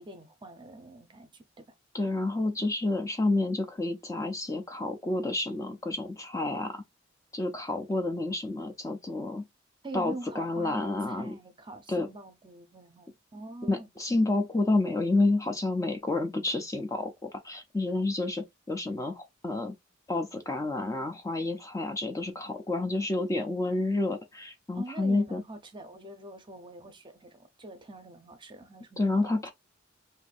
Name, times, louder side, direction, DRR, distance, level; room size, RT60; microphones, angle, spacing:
voice 1, 0.0-1.8 9.8-13.9 24.7-29.5, right 2 dB, 25° right, 0.6 m, -44 dB
voice 2, 1.9-6.8 7.3-9.4 9.9-11.4 11.9-12.1 13.6-19.7 20.1-25.4 29.0-29.5, left 2 dB, 15° left, 0.5 m, -29 dB
2.6 x 2.6 x 4.0 m
head